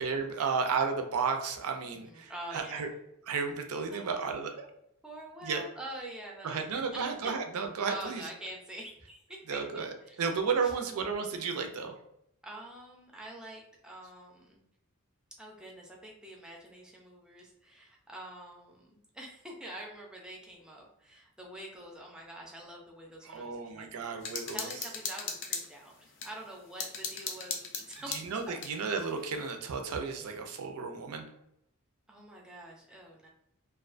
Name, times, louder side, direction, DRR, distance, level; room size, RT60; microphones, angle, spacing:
voice 1, 0.0-2.9 3.3-4.7 5.4-5.6 6.4-8.3 9.5-11.9 23.2-24.7 28.1-31.3, right 5 dB, 75° right, 5 dB, 0.4 m, -33 dB
voice 2, 1.8-2.9 3.9-4.5 5.0-7.1 7.9-9.6 10.1-10.2 10.6-10.7 12.4-14.6 15.4-23.9 24.5-28.1 28.5-28.6 32.1-33.3, right 1 dB, 5° right, -2 dB, 0.4 m, -46 dB
sound 1, 24.2-26.3 26.8-28.8, left 5 dB, 55° left, 0.4 m, -37 dB
2.3 x 2.2 x 2.4 m, 0.78 s
head